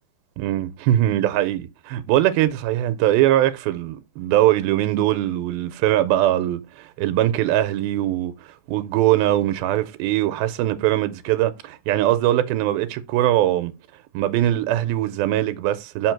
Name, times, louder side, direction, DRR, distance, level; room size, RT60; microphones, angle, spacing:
voice 1, 0.4-8.3 8.7-13.7 14.1-16.1, right 13 dB, 85° right, 2.4 m, -21 dB
6.0 x 5.0 x 4.5 m
omnidirectional pair, 4.2 m